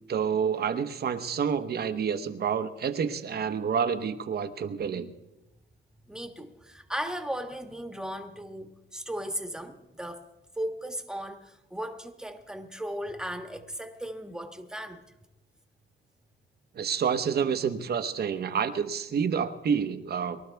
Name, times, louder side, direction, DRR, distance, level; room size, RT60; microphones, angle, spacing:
voice 1, 0.1-5.1 16.8-20.4, right 7 dB, 55° right, 1.0 m, -28 dB
voice 2, 6.1-10.3 10.6-15.0, equal, 5° right, 1.5 m, -36 dB
23.5 x 12.0 x 3.5 m
cardioid pair, 90°, 20 cm